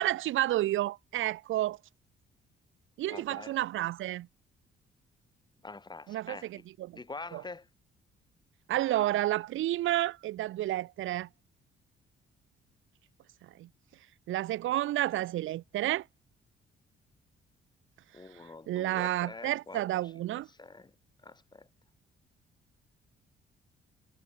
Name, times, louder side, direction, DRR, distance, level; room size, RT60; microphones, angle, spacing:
voice 1, 0.0-1.8 3.0-4.3 6.1-7.0 7.3-7.4 8.7-11.3 13.4-13.7 14.3-16.0 18.7-20.5, right 14 dB, 80° right, 1.4 m, -30 dB
voice 2, 3.1-3.5 5.6-6.6 6.9-7.7 18.1-20.1 20.6-20.9 21.2-21.7, left 3 dB, 20° left, 4.5 m, -45 dB
cardioid pair, 90°, 20 cm